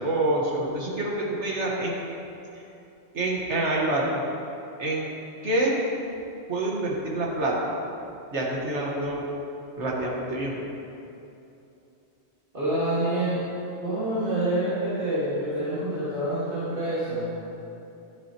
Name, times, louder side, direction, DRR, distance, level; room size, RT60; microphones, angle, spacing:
voice 1, 0.0-1.9 3.1-4.2 4.8-5.1 5.4-5.8 6.5-7.8 8.3-9.2 9.8-10.7, right 2 dB, 85° right, -3 dB, 1.8 m, -27 dB
voice 2, 12.5-13.4 13.8-17.5, right 1 dB, 50° right, -11 dB, 2.1 m, -27 dB
11.0 x 10.5 x 2.9 m, 2.8 s
omnidirectional pair, 1.1 m